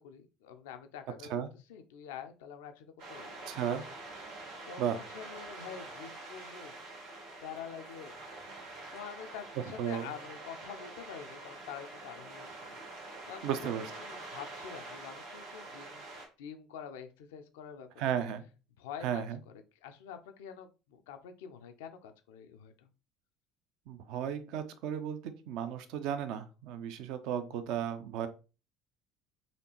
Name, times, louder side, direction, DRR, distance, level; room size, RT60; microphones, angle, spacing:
voice 1, 0.0-1.4 1.7-3.5 4.7-6.7 7.4-8.2 8.9-12.8 13.3-13.7 14.0-16.1 16.4-17.9 18.8-22.9, left 8 dB, 70° left, 8 dB, 0.5 m, -47 dB
sound 1, 3.0-16.3, right 2 dB, 75° right, 1.7 m, -46 dB
voice 2, 3.5-3.8 4.8-5.0 9.8-10.1 13.4-13.9 18.0-18.4 19.0-19.4 23.9-28.3, right 9 dB, 60° right, 10 dB, 0.5 m, -34 dB
4.2 x 2.9 x 2.9 m, 0.32 s
figure-of-eight pair, 60°, 0 cm